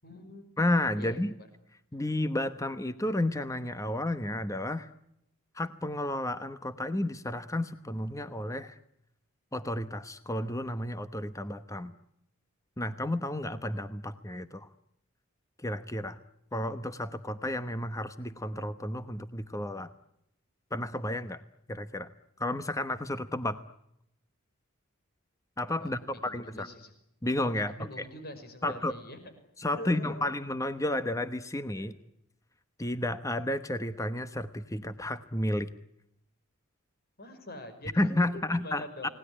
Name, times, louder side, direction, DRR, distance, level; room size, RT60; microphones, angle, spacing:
voice 1, 0.0-0.4 0.9-1.2 25.8-26.9 27.5-29.2 29.8-30.2 31.7-31.9 37.2-39.1, left 1 dB, 45° left, 8 dB, 5.8 m, -45 dB
voice 2, 0.6-1.3 1.9-4.9 5.5-8.8 9.5-11.9 12.8-14.7 15.6-16.2 16.5-19.9 20.7-21.4 21.7-22.1 22.4-23.6 25.6-26.7 27.2-28.1 28.6-28.9 29.6-31.9 32.8-35.7 37.9-39.1, left 1 dB, 15° left, 10 dB, 1.1 m, -32 dB
29.5 x 19.0 x 10.0 m, 0.81 s
head